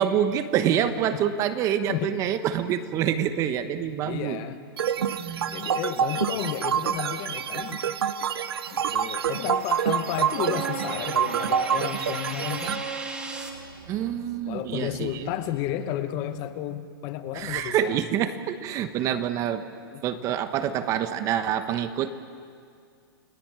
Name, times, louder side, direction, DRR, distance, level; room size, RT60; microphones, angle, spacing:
voice 1, 0.0-4.4 5.1-5.7 13.9-15.3 17.3-19.6 20.0-22.1, right 9 dB, 25° right, 11 dB, 1.2 m, -26 dB
voice 2, 4.0-4.6 5.5-7.9 8.7-12.8 14.5-18.0 19.9-20.2, left 12 dB, 30° left, 11 dB, 1.0 m, -32 dB
sound 1, 4.8-12.8, right 8 dB, 80° right, 1.2 m, -27 dB
sound 2, 6.7-13.5, right 2 dB, 10° right, 2.5 m, -41 dB
sound 3, 10.0-15.9 16.2-16.5, right 6 dB, 55° right, 3.9 m, -39 dB
29.5 x 18.5 x 8.9 m, 2.3 s
hypercardioid pair, 155°, 13 cm